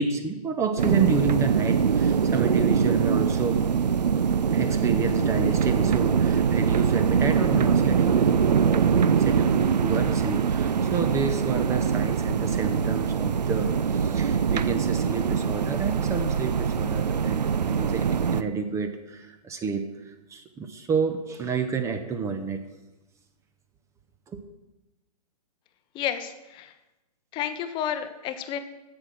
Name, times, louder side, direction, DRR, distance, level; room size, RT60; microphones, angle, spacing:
voice 1, 0.0-3.6 4.5-22.6 24.3-24.4, right 5 dB, 15° right, 8 dB, 0.6 m, -30 dB
sound 1, 0.8-18.4, right 6 dB, 85° right, 0.5 m, -23 dB
voice 2, 25.9-26.7 27.3-28.6, left 9 dB, 25° left, 9 dB, 0.7 m, -31 dB
7.9 x 7.0 x 6.1 m, 1.0 s
figure-of-eight pair, 125°, 21 cm